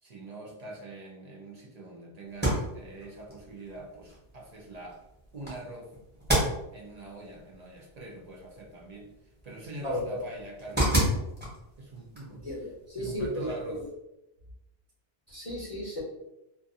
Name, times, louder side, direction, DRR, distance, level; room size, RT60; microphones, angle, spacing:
voice 1, 0.0-5.0 5.3-5.9 6.7-11.3 11.8-12.5 13.0-13.9, right 2 dB, 55° right, -2 dB, 0.5 m, -44 dB
sound 1, 2.3-13.9, right 1 dB, 10° right, 0.8 m, -34 dB
voice 2, 9.8-10.2 12.4-13.8 15.3-16.0, left 1 dB, 35° left, -7 dB, 0.6 m, -34 dB
2.4 x 2.3 x 2.6 m, 0.89 s
omnidirectional pair, 1.1 m